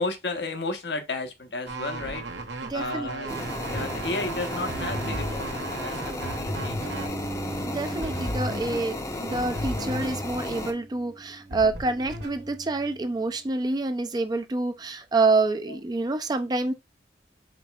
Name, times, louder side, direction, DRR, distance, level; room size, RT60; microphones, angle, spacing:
voice 1, 0.0-2.3 2.7-3.3 3.6-7.2 15.7-15.8, left 2 dB, 70° left, 1.0 m, -33 dB
sound 1, 1.7-7.1, right 3 dB, 85° right, 1.0 m, -36 dB
voice 2, 2.7-3.4 7.7-16.7, right 3 dB, 25° right, 0.4 m, -27 dB
sound 2, 3.3-10.7, left 2 dB, 20° left, 0.6 m, -34 dB
sound 3, 3.7-13.2, equal, 70° right, 1.3 m, -36 dB
5.1 x 4.3 x 2.3 m
head